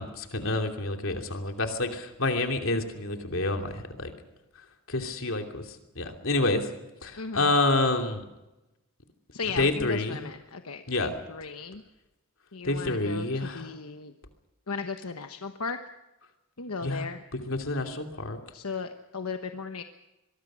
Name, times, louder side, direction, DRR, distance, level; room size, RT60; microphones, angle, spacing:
voice 1, 0.0-4.1 4.9-5.6 6.0-6.7 7.0-8.2 9.6-10.2 10.9-11.1 12.6-13.7 16.8-17.0 17.3-18.4, left 2 dB, 65° left, 4 dB, 2.9 m, -28 dB
voice 2, 7.2-7.5 9.3-11.8 12.5-14.1 14.7-15.8 16.6-17.2 18.5-19.8, left 4 dB, 90° left, 7 dB, 1.1 m, -36 dB
24.5 x 22.0 x 6.3 m, 1.0 s
head